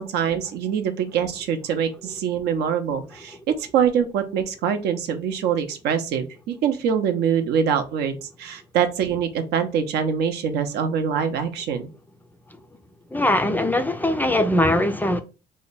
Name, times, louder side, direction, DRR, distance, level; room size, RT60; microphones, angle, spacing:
voice 1, 0.0-11.9, right 7 dB, 75° right, 0.6 m, -24 dB
voice 2, 13.1-15.2, left 1 dB, 10° left, 0.3 m, -21 dB
2.7 x 2.2 x 4.0 m
cardioid pair, 110°, 17 cm